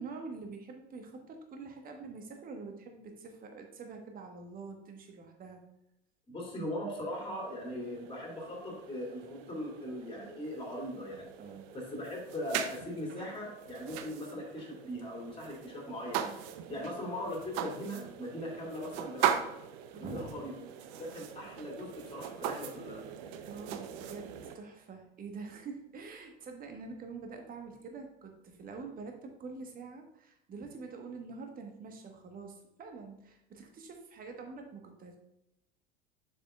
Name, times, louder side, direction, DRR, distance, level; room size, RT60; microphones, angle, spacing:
voice 1, 0.0-5.6 11.4-11.7 16.6-16.9 19.9-20.7 23.4-35.2, right 4 dB, 30° right, 4 dB, 1.3 m, -46 dB
voice 2, 6.3-11.3 11.7-16.4 16.7-19.6 20.0-20.5 20.9-23.0, left 1 dB, 20° left, -2 dB, 2.6 m, -40 dB
sound 1, 7.1-24.6, right 10 dB, 50° right, 0.7 m, -40 dB
7.2 x 7.0 x 2.4 m, 0.83 s
figure-of-eight pair, 75°, 30 cm